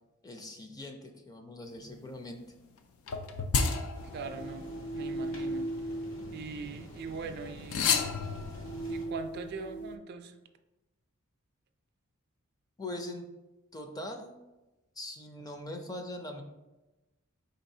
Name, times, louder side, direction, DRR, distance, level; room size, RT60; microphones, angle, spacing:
voice 1, 0.2-2.4 12.8-13.3 13.7-14.4 15.0-16.4, left 1 dB, 20° left, 4 dB, 0.4 m, -41 dB
sound 1, 3.1-6.9 7.6-10.0, left 3 dB, 90° left, 0.4 m, -33 dB
sound 2, 3.9-9.1, equal, 70° left, 1.1 m, -47 dB
voice 2, 4.1-4.7 4.9-5.7 6.3-8.0 8.9-10.4, right 4 dB, 50° right, 7 dB, 0.3 m, -41 dB
4.8 x 3.9 x 2.7 m, 1.0 s
head